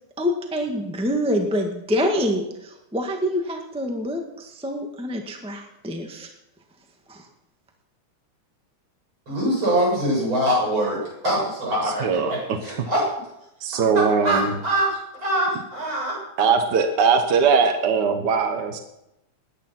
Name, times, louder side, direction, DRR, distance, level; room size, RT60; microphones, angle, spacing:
voice 1, 0.2-6.3 7.1-7.3, equal, 5° right, 2 dB, 0.7 m, -26 dB
voice 2, 9.3-13.1 13.9-16.2, right 1 dB, 35° right, -4 dB, 8.4 m, -24 dB
voice 3, 12.0-12.3 13.6-14.5 16.4-18.8, right 5 dB, 65° right, 6 dB, 1.0 m, -20 dB
19.5 x 9.7 x 5.9 m, 0.87 s
omnidirectional pair, 3.7 m